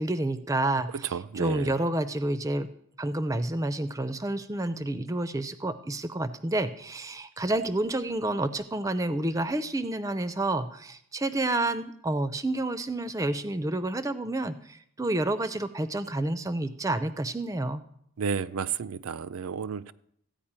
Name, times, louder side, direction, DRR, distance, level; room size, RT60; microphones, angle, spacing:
voice 1, 0.0-2.7 3.0-17.8, right 2 dB, 15° right, 12 dB, 0.5 m, -29 dB
voice 2, 1.1-1.7 18.2-19.9, right 6 dB, 70° right, 14 dB, 0.5 m, -32 dB
14.5 x 5.2 x 8.7 m, 0.71 s
head